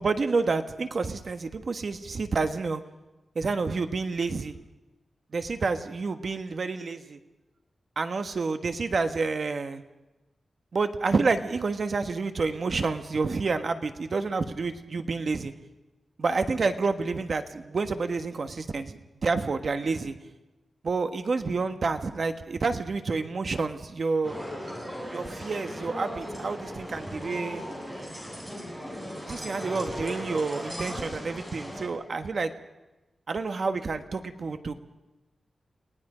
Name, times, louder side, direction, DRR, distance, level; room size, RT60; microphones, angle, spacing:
voice 1, 0.0-2.8 3.3-4.6 5.3-7.2 8.0-9.8 10.7-15.5 16.2-20.2 20.8-24.4 25.1-27.6 29.3-32.5 33.3-34.7, right 4 dB, 55° right, 7 dB, 1.4 m, -29 dB
sound 1, 24.2-31.9, equal, 15° right, 7.9 m, -37 dB
30.0 x 19.0 x 5.1 m, 1.0 s
wide cardioid pair, 130°, 0 cm